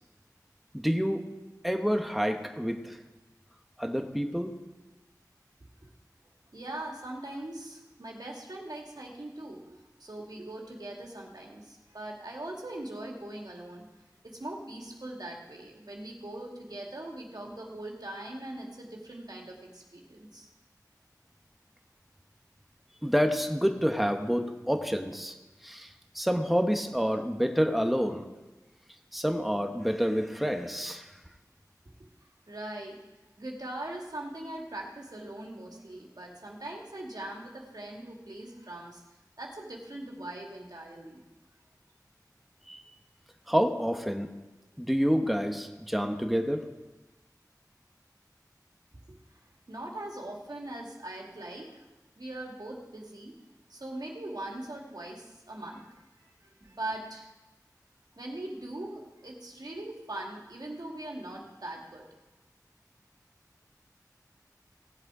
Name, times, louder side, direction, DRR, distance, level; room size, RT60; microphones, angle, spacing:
voice 1, 0.7-1.2 1.6-3.0 3.8-4.5 23.0-25.3 25.6-28.3 29.1-31.1 42.7-42.8 43.5-44.3 44.8-46.7, equal, ahead, 5 dB, 1.2 m, -28 dB
voice 2, 6.5-13.9 14.2-20.5 32.5-33.0 33.4-39.0 39.4-41.2 49.1-51.8 52.2-53.4 53.7-57.3 58.2-62.1, right 1 dB, 75° right, -1 dB, 2.2 m, -41 dB
18.0 x 7.5 x 4.9 m, 1.1 s
wide cardioid pair, 40°, 7 cm